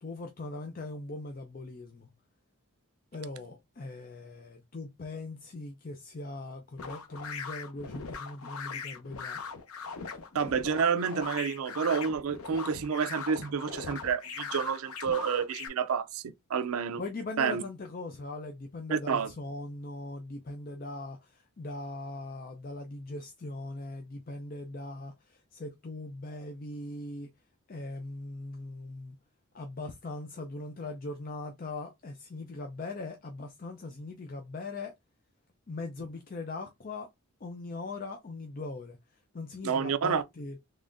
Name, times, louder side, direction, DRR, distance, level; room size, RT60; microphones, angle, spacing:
voice 1, 0.0-2.1 3.1-9.4 17.0-27.3 27.7-29.2 29.5-34.9 35.7-37.1 37.4-39.0 39.3-40.6, left 2 dB, 40° left, 0.4 m, -40 dB
sound 1, 6.8-15.7, left 5 dB, 80° left, 0.7 m, -40 dB
voice 2, 10.3-16.2 16.5-17.0 17.4-17.6 18.9-19.3 39.6-40.2, right 6 dB, 75° right, 0.4 m, -29 dB
3.6 x 3.2 x 2.5 m
head